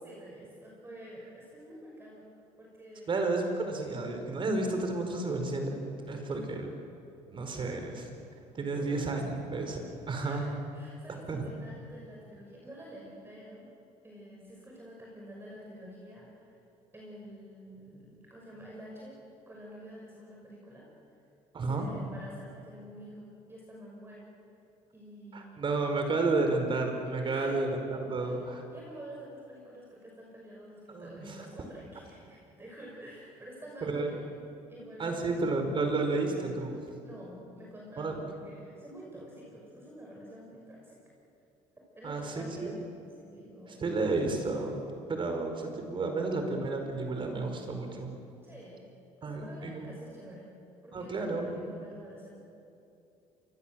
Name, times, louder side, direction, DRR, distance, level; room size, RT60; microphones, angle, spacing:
voice 1, 0.0-2.3 2.6-3.1 8.8-9.0 10.2-13.7 14.0-16.6 16.9-19.2 19.5-20.9 21.6-24.3 24.9-26.1 27.3-27.6 28.2-34.3 34.7-36.0 37.0-41.0 41.9-42.8 43.2-43.8 48.4-48.9 49.2-50.5 50.8-52.4, right 1 dB, 15° right, -3 dB, 5.7 m, -48 dB
voice 2, 3.1-5.7 6.1-6.7 7.3-8.1 8.5-10.5 11.3-11.5 21.5-21.9 25.3-28.6 30.9-31.4 33.8-34.1 35.0-36.8 38.0-38.3 42.0-42.7 43.7-44.8 45.1-48.1 49.2-49.9 50.9-51.6, right 3 dB, 40° right, 4 dB, 4.9 m, -31 dB
27.0 x 22.0 x 7.7 m, 2.7 s
cardioid pair, 100°, 14 cm